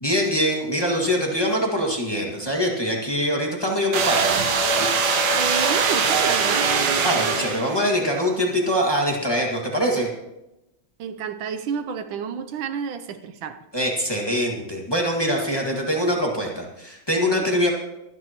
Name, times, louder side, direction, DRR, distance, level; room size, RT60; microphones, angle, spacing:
voice 1, 0.0-4.3 7.0-10.1 13.7-17.7, equal, 15° left, -1 dB, 1.7 m, -23 dB
sound 1, 3.9-8.0, right 5 dB, 60° right, 1.6 m, -21 dB
voice 2, 5.0-6.7 11.0-13.6 17.3-17.5, right 7 dB, 80° right, 9 dB, 1.5 m, -30 dB
24.5 x 9.7 x 3.0 m, 0.93 s
omnidirectional pair, 2.2 m